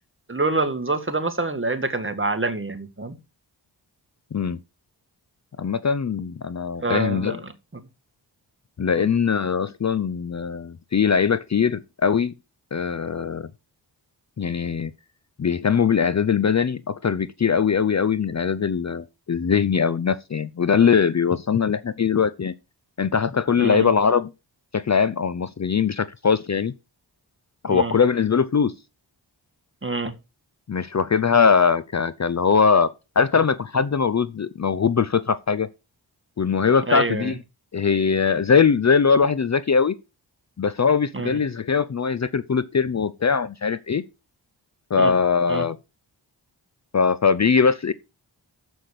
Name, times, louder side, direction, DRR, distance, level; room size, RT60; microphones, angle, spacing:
voice 1, 0.3-3.2 6.8-7.4 9.0-9.1 23.6-23.9 27.7-27.9 29.8-30.1 36.9-37.3 41.1-41.3 45.0-45.1 45.5-45.6, right 3 dB, 25° right, 1.8 m, -26 dB
voice 2, 5.6-7.4 8.8-12.3 12.7-13.5 14.4-14.9 15.4-22.5 23.0-24.3 24.7-26.7 27.6-28.7 30.7-32.9 33.2-35.7 36.4-37.4 37.7-39.9 40.6-44.0 44.9-45.8 46.9-47.9, left 6 dB, 40° left, 0.6 m, -21 dB
7.1 x 5.9 x 6.6 m
cardioid pair, 45°, 45 cm